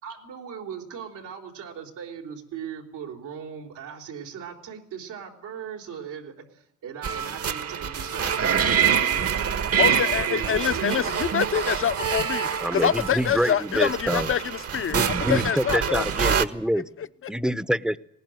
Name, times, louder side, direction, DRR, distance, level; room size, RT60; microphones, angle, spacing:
voice 1, 0.0-9.8 10.3-11.4, right 7 dB, 90° right, 4.1 m, -39 dB
sound 1, 7.0-16.5, right 8 dB, 50° right, 1.5 m, -26 dB
voice 2, 9.8-16.0 17.0-17.3, left 9 dB, 45° left, 0.9 m, -26 dB
voice 3, 12.6-14.3 14.9-16.9 17.3-18.0, equal, 5° right, 0.9 m, -26 dB
20.0 x 18.5 x 9.3 m
cardioid pair, 90°, 30 cm